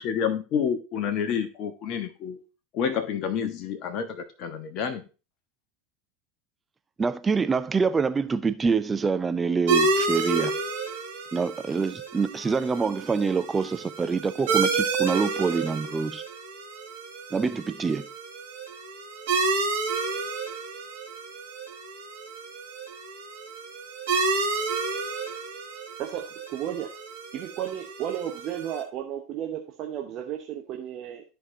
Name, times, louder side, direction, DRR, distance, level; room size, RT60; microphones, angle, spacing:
voice 1, 0.0-2.4 2.7-5.0, left 7 dB, 40° left, 1.1 m, -29 dB
voice 2, 7.0-10.5 11.3-16.2 17.3-18.1, right 5 dB, 20° right, 0.5 m, -26 dB
sound 1, 9.7-28.8, right 4 dB, 60° right, 2.6 m, -30 dB
voice 3, 26.5-26.9 27.3-31.2, right 10 dB, 40° right, 1.0 m, -33 dB
13.0 x 4.6 x 2.8 m
figure-of-eight pair, 80°, 0 cm